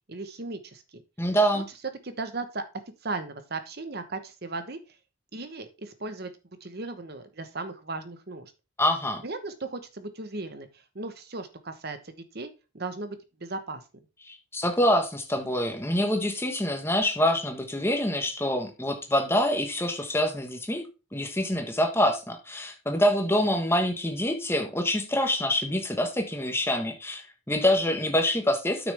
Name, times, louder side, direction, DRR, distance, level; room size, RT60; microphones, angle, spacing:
voice 1, 0.1-1.0 1.5-1.6 2.0-2.6 3.0-4.8 5.3-6.3 6.6-8.5 9.2-10.7 10.9-13.8, right 3 dB, 45° right, 9 dB, 1.1 m, -36 dB
voice 2, 1.2-1.7 8.8-9.2 14.2-20.8 21.1-28.9, left 1 dB, 10° left, 4 dB, 1.4 m, -26 dB
9.1 x 6.2 x 3.4 m, 0.30 s
head